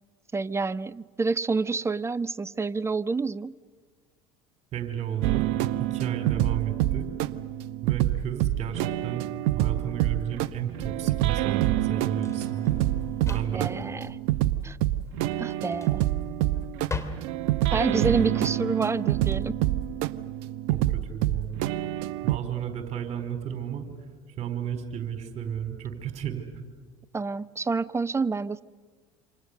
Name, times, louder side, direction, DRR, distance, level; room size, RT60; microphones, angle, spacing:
voice 1, 0.3-3.6 13.3-14.2 14.6-14.8 15.4-16.1 17.7-19.6 27.1-28.6, right 4 dB, 15° right, 17 dB, 0.7 m, -28 dB
voice 2, 4.7-7.1 7.8-12.8 13.3-13.9 18.1-18.3 20.7-21.7 22.2-23.9 24.4-26.5, right 9 dB, 45° right, 7 dB, 4.3 m, -33 dB
sound 1, 5.2-22.4, right 14 dB, 60° right, 0.8 m, -27 dB
Drawer open or close, 9.8-19.4, left 3 dB, 20° left, 2.9 m, -41 dB
27.5 x 26.5 x 6.7 m, 1.5 s
hypercardioid pair, 70°, 16 cm